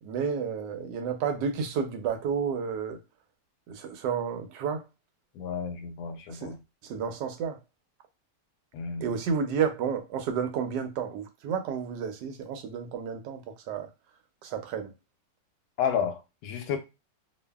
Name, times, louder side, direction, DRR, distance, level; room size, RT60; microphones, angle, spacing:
voice 1, 0.0-3.0 3.7-4.8 6.3-6.6 6.8-7.6 9.0-13.9 14.4-14.9, right 6 dB, 85° right, 1.2 m, -31 dB
voice 2, 5.3-6.6 8.7-9.1 15.8-16.8, left 7 dB, 70° left, 1.0 m, -31 dB
2.5 x 2.5 x 2.2 m
omnidirectional pair, 1.8 m